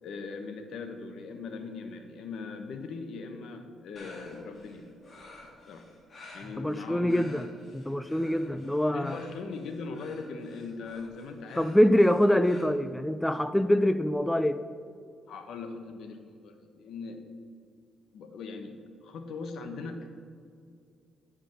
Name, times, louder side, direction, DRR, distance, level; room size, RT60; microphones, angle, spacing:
voice 1, 0.0-4.9 5.7-5.9 6.3-7.2 8.9-11.8 15.3-17.2 18.1-18.7 19.0-20.1, left 4 dB, 70° left, 6 dB, 1.1 m, -40 dB
sound 1, 4.0-12.6, left 2 dB, 40° left, 2.3 m, -51 dB
voice 2, 6.6-7.5 7.7-9.2 11.6-14.6, equal, 5° left, 11 dB, 0.4 m, -24 dB
10.5 x 5.1 x 6.4 m, 2.3 s
cardioid pair, 90°, 0 cm